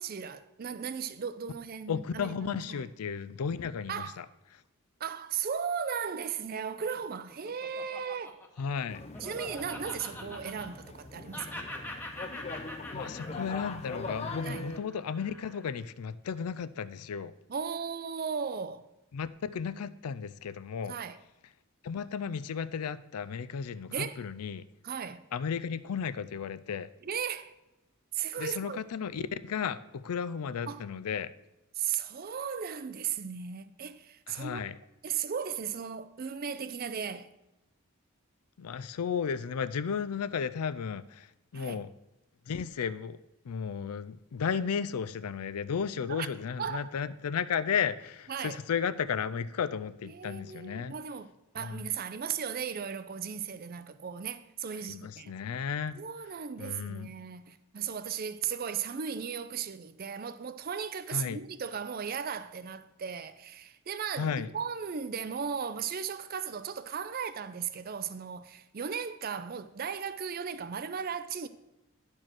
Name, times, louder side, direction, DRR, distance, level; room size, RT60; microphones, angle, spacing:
voice 1, 0.0-2.9 3.9-4.2 5.0-8.4 9.2-11.5 14.4-14.7 17.5-18.9 20.8-21.2 23.9-24.2 24.8-25.2 27.0-27.5 28.1-28.8 30.7-30.8 31.8-34.6 35.0-37.3 41.5-41.8 46.1-46.3 46.6-46.9 48.3-48.6 50.0-55.3 55.9-71.5, right 7 dB, 40° right, 0.4 m, -36 dB
voice 2, 1.9-4.3 8.6-9.0 12.9-17.3 19.1-21.0 21.8-24.6 25.3-26.9 28.4-31.3 34.3-34.7 38.6-41.9 42.5-43.2 43.4-50.9 51.6-51.8 54.8-56.0 56.6-57.1 61.1-61.4 64.2-64.5, left 6 dB, 85° left, 0.4 m, -34 dB
Laughter, 6.8-11.0 11.3-15.8, left 1 dB, 10° left, 0.9 m, -44 dB
sound 1, 8.9-14.8, left 3 dB, 30° left, 0.5 m, -41 dB
10.5 x 4.4 x 6.1 m
head